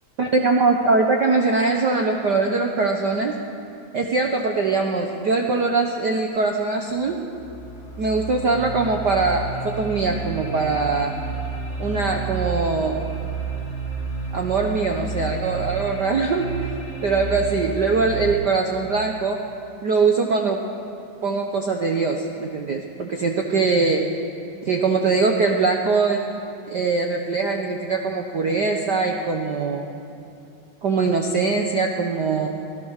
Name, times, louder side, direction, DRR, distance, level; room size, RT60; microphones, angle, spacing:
voice 1, 0.2-3.4 3.9-7.2 8.0-11.1 11.8-13.0 14.3-16.5 17.0-19.4 19.8-20.6 21.2-24.0 24.7-26.2 26.7-29.9 30.8-32.5, right 4 dB, 70° right, 2 dB, 0.9 m, -22 dB
sound 1, 7.0-18.3, right 4 dB, 25° left, 1.3 m, -31 dB
25.0 x 17.0 x 6.5 m, 2.7 s
omnidirectional pair, 3.5 m